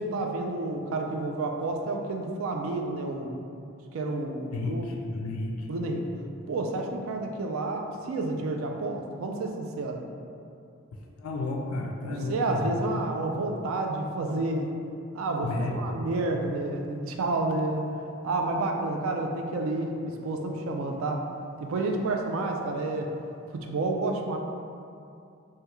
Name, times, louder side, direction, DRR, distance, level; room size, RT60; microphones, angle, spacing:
voice 1, 0.0-3.3 3.9-4.8 5.7-6.0 6.5-10.0 12.3-14.7 15.1-17.9 18.2-21.2 21.6-23.1 23.5-24.4, right 2 dB, 70° right, 2 dB, 0.4 m, -30 dB
voice 2, 4.5-5.7 10.9-12.8 13.2-13.3 15.4-15.9, left 2 dB, 85° left, 1 dB, 0.3 m, -32 dB
3.4 x 2.2 x 3.0 m, 2.5 s
head